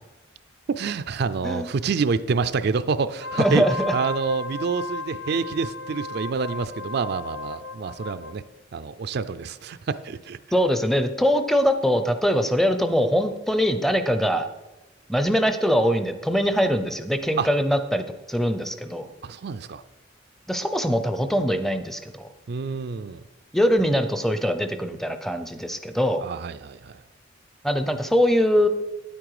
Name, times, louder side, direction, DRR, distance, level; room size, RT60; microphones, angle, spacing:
voice 1, 0.7-3.6 3.9-8.4 8.7-10.4 17.4-17.5 19.2-19.8 22.5-23.2 26.2-26.9, right 5 dB, 55° right, 13 dB, 0.4 m, -27 dB
Wind instrument woodwind instrument, 3.1-8.4, left 2 dB, 65° left, 0.7 m, -35 dB
voice 2, 3.4-3.9 10.5-14.5 15.1-19.1 20.5-22.3 23.5-26.2 27.6-28.7, equal, ahead, 9 dB, 0.6 m, -22 dB
9.3 x 8.8 x 4.8 m, 1.1 s
head